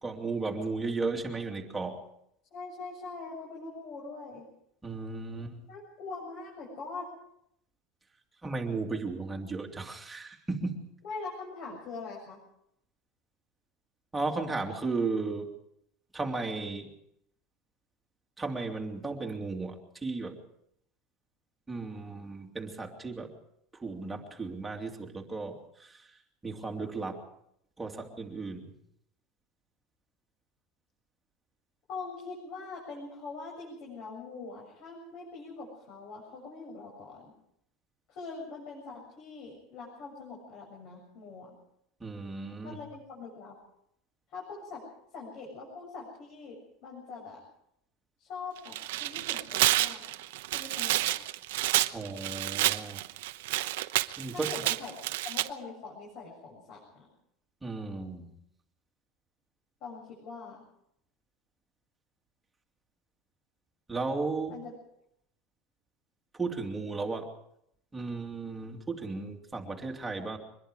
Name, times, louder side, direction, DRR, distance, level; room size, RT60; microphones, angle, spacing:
voice 1, 0.0-2.0 4.8-5.6 8.4-10.9 14.1-15.5 16.1-16.9 18.4-20.4 21.7-23.3 23.8-26.1 26.4-27.2 27.8-28.7 42.0-42.8 51.9-53.0 54.2-54.5 57.6-58.3 63.9-64.6 66.3-67.3 67.9-70.4, right 3 dB, 10° right, 1 dB, 2.7 m, -35 dB
voice 2, 2.5-4.5 5.7-7.1 11.0-12.4 31.9-37.3 38.1-41.5 42.6-43.5 44.3-44.8 45.1-47.4 48.2-50.2 50.5-51.2 54.3-54.9 55.2-57.1 59.8-60.6 64.5-64.7, left 4 dB, 45° left, -2 dB, 7.6 m, -43 dB
Tearing, 48.6-55.5, right 16 dB, 85° right, 1.0 m, -29 dB
24.5 x 21.5 x 5.0 m, 0.74 s
supercardioid pair, 165°, 0 cm